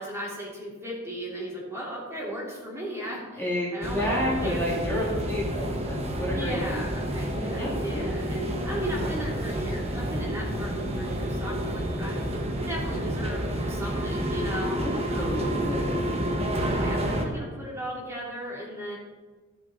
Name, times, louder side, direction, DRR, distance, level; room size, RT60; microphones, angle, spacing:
voice 1, 0.0-3.4 3.7-4.6 4.9-5.0 6.3-12.2 12.6-15.4 16.6-19.0, equal, 15° right, -4 dB, 2.8 m, -36 dB
voice 2, 3.4-6.8 7.3-8.0 14.8-16.2, equal, 10° left, -6 dB, 2.4 m, -30 dB
sound 1, 3.8-17.3, right 1 dB, 30° right, 1.4 m, -29 dB
14.0 x 7.4 x 4.0 m, 1.4 s
head